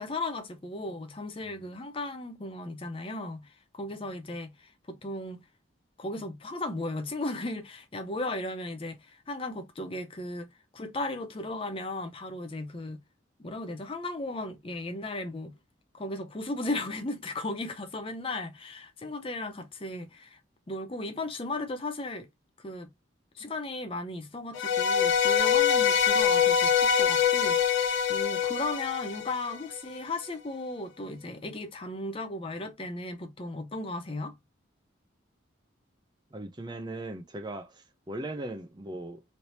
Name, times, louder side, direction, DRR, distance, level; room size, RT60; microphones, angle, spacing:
voice 1, 0.0-5.4 6.0-10.5 10.7-13.0 13.4-15.5 15.9-20.4 20.7-22.3 22.6-22.9 23.3-34.4, left 2 dB, 25° left, 0.5 m, -36 dB
sound 1, 24.5-29.8, left 8 dB, 80° left, 0.8 m, -24 dB
voice 2, 36.3-39.2, right 1 dB, 20° right, 0.5 m, -38 dB
3.2 x 2.8 x 2.7 m
head